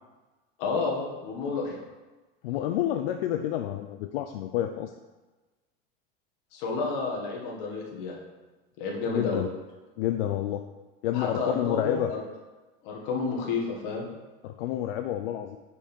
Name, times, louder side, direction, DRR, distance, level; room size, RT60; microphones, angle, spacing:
voice 1, 0.6-1.8 6.5-8.2 8.8-9.4 11.1-12.2 12.8-14.1, left 4 dB, 55° left, -2 dB, 1.7 m, -30 dB
voice 2, 2.4-4.9 9.1-9.5 10.0-10.7 11.0-12.1 14.4-15.6, left 12 dB, 75° left, 7 dB, 0.5 m, -29 dB
5.3 x 5.2 x 4.3 m, 1.2 s
supercardioid pair, 140°, 30 cm